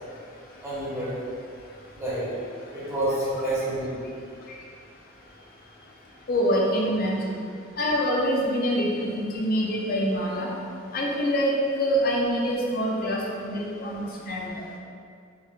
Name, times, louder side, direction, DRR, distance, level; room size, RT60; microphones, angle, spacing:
voice 1, 0.6-1.1 1.9-2.3 2.7-4.1, right 1 dB, 15° right, -11 dB, 1.1 m, -28 dB
voice 2, 6.3-7.3 7.8-10.5 10.9-11.5 11.8-14.5, equal, 45° left, -2 dB, 0.5 m, -25 dB
4.4 x 2.4 x 2.4 m, 2.3 s
head